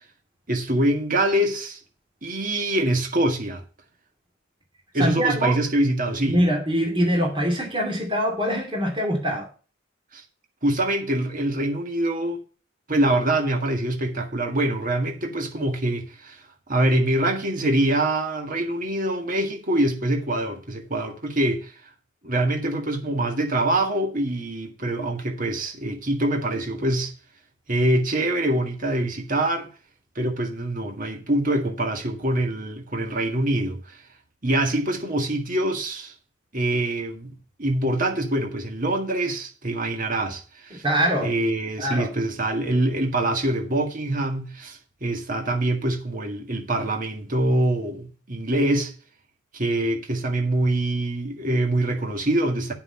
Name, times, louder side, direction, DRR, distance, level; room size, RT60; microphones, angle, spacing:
voice 1, 0.5-1.8 2.2-3.6 4.9-6.4 10.1-10.2 10.6-12.4 12.9-16.4 16.7-21.7 22.2-27.1 27.7-29.7 30.2-34.0 34.4-36.1 36.5-40.8 41.2-48.9 49.5-52.7, right 1 dB, 45° right, 1.8 m, -24 dB
voice 2, 4.9-5.6 6.2-9.5 40.7-41.3 41.8-42.1, equal, 25° right, 2.8 m, -23 dB
9.6 x 5.9 x 5.8 m
head